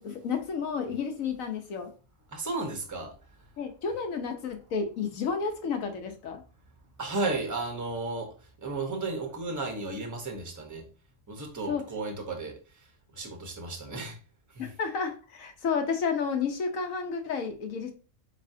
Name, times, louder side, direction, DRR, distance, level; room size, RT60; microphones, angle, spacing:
voice 1, 0.0-1.9 3.6-6.4 11.7-11.8 14.6-17.9, left 5 dB, 70° left, 1.2 m, -31 dB
voice 2, 2.3-3.1 7.0-8.3 8.6-10.9 11.3-12.6 13.1-14.2 14.5-14.7, right 3 dB, 15° right, 0.8 m, -33 dB
4.6 x 4.1 x 2.7 m
omnidirectional pair, 1.5 m